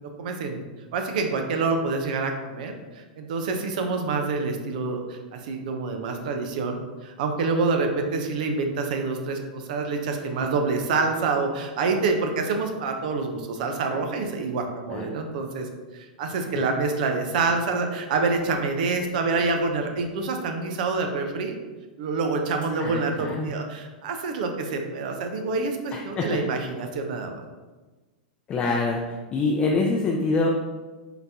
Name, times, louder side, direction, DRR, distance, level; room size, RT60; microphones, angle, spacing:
voice 1, 0.2-0.6 0.9-21.6 22.0-27.4, right 4 dB, 65° right, 4 dB, 0.6 m, -27 dB
voice 2, 22.8-23.5 25.9-26.4 28.5-30.5, left 3 dB, 30° left, -1 dB, 0.4 m, -25 dB
3.9 x 2.8 x 3.4 m, 1.3 s
hypercardioid pair, 110°, 5 cm